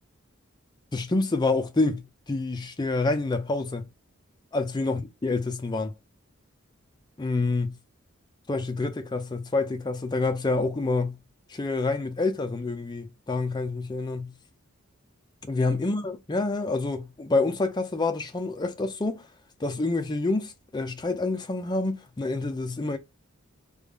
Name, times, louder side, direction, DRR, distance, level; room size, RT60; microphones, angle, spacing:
voice 1, 0.9-3.9 4.5-5.9 7.2-7.7 8.5-11.2 11.5-14.3 15.4-19.3 19.6-23.0, left 3 dB, 20° left, 0.5 m, -27 dB
3.5 x 2.1 x 3.4 m
head